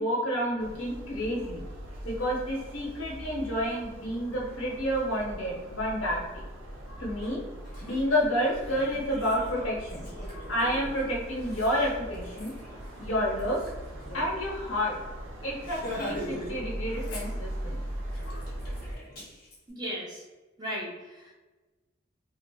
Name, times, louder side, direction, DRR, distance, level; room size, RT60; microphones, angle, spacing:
voice 1, 0.0-1.6 2.0-6.4 6.9-7.4 7.8-10.0 10.5-12.5 13.0-13.6 14.1-14.9 15.4-17.8 18.2-18.4, equal, 80° left, -3 dB, 0.8 m, -30 dB
sound 1, 0.6-18.9, right 1 dB, 85° right, 0.5 m, -40 dB
Laughter, 7.2-7.3 7.6-14.3 14.6-14.7 15.0-15.2 15.6-16.6 16.9-17.7 18.1-19.6, left 1 dB, 50° left, 0.8 m, -42 dB
voice 2, 19.7-20.2 20.6-21.3, equal, 20° right, -3 dB, 0.4 m, -36 dB
2.7 x 2.3 x 2.2 m, 1.2 s
head